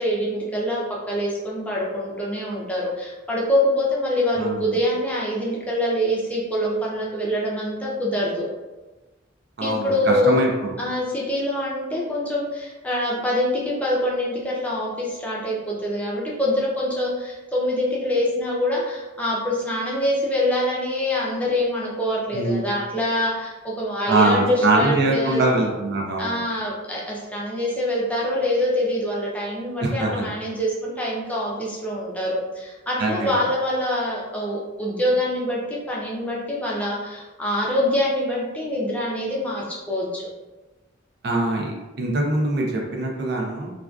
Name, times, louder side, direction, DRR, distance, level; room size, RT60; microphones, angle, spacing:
voice 1, 0.0-8.4 9.6-10.4 10.8-25.5 26.2-40.3, left 1 dB, 10° left, -5 dB, 0.4 m, -25 dB
voice 2, 9.6-10.5 22.3-22.6 24.1-26.4 29.8-30.2 33.0-33.4 41.2-43.7, right 2 dB, 60° right, -1 dB, 0.5 m, -22 dB
2.4 x 2.3 x 2.3 m, 1.1 s
head